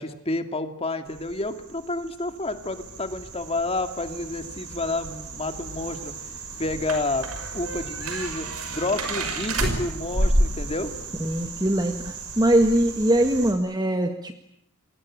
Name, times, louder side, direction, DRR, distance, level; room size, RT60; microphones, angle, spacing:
voice 1, 0.0-6.3 6.6-7.3 7.5-10.9, left 2 dB, 30° left, 8 dB, 2.3 m, -30 dB
sound 1, 1.1-13.5, right 2 dB, 90° right, 6.0 m, -31 dB
voice 2, 11.2-14.3, right 1 dB, 20° right, 6 dB, 1.6 m, -22 dB
29.5 x 23.0 x 8.8 m, 0.76 s
head